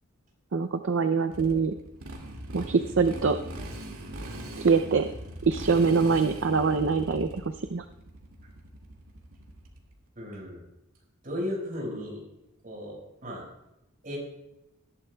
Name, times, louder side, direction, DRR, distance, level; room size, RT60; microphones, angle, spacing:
voice 1, 0.5-1.7 2.5-3.4 4.6-5.1 5.4-7.8, right 5 dB, 60° right, 9 dB, 0.5 m, -24 dB
Motorcycle, 1.3-9.9, right 1 dB, 85° right, 2.1 m, -40 dB
voice 2, 10.1-10.6 11.2-12.2 12.6-13.5 14.0-14.2, left 1 dB, 40° right, -2 dB, 5.0 m, -35 dB
18.0 x 12.0 x 2.3 m, 0.89 s
head